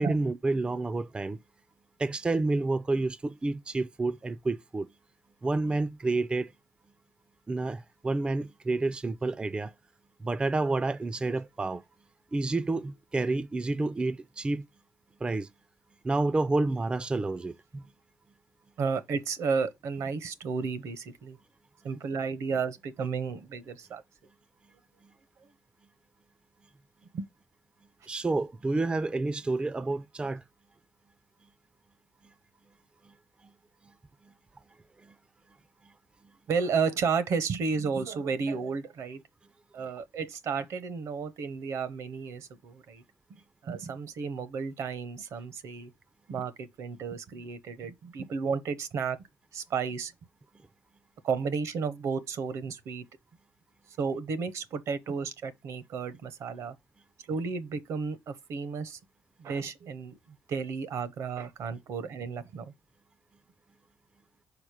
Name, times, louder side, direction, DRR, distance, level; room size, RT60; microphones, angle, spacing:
voice 1, 0.0-1.4 2.0-4.9 5.4-6.5 7.5-9.7 10.2-11.8 12.3-14.6 15.2-15.5 16.0-17.9 28.1-30.4 33.0-33.1 35.0-35.1, right 2 dB, 20° right, 0.4 m, -29 dB
voice 2, 18.8-21.4 21.8-24.0 27.1-27.3 36.5-39.2 39.7-43.0 43.6-45.9 46.3-49.2 49.5-50.1 51.2-53.0 54.0-56.8 57.3-59.0 59.4-62.7, right 5 dB, 70° right, 0.8 m, -32 dB
4.9 x 4.2 x 5.0 m
cardioid pair, 90°, 5 cm